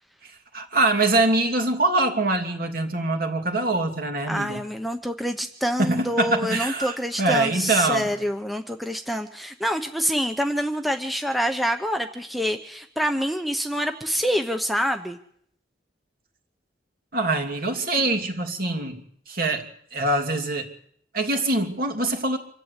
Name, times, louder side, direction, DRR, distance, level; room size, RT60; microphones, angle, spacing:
voice 1, 0.2-4.6 5.8-8.1 17.1-20.7 21.1-22.4, right 2 dB, 55° right, 4 dB, 2.8 m, -24 dB
voice 2, 4.3-15.2, equal, ahead, 6 dB, 0.9 m, -26 dB
26.0 x 12.0 x 8.4 m, 0.67 s
head